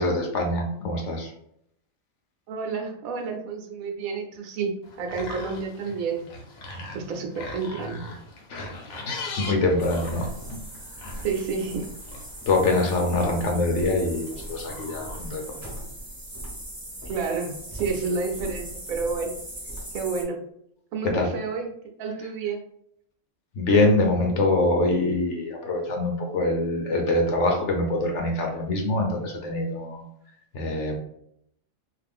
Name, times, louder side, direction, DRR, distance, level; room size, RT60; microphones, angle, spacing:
voice 1, 0.0-1.3 8.5-8.8 9.0-10.6 12.5-15.6 21.0-21.3 23.5-30.0 30.5-31.0, left 2 dB, 65° left, 2 dB, 0.9 m, -24 dB
voice 2, 2.5-6.2 6.9-8.0 11.2-11.9 17.1-19.4 19.9-20.4 20.9-21.7 22.0-22.6, right 4 dB, 80° right, 3 dB, 1.1 m, -30 dB
sound 1, 4.8-15.6, left 2 dB, 80° left, 1.1 m, -41 dB
sound 2, 9.8-20.2, right 1 dB, 15° right, 0.8 m, -39 dB
2.5 x 2.5 x 3.4 m, 0.72 s
omnidirectional pair, 1.4 m